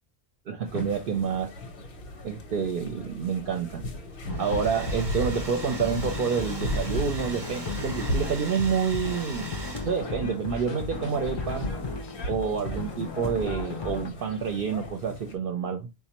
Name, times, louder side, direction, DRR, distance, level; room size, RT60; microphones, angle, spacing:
voice 1, 0.5-1.5 2.2-3.8 4.4-9.5 9.8-11.7 12.3-15.9, right 6 dB, 65° right, 0.7 m, -28 dB
sound 1, 0.7-15.4, left 1 dB, 80° left, 1.0 m, -37 dB
Domestic sounds home sounds, 4.1-10.2, right 2 dB, 25° right, 0.8 m, -41 dB
sound 2, 4.3-14.1, left 3 dB, 40° left, 0.4 m, -36 dB
4.2 x 2.3 x 2.8 m
omnidirectional pair, 1.1 m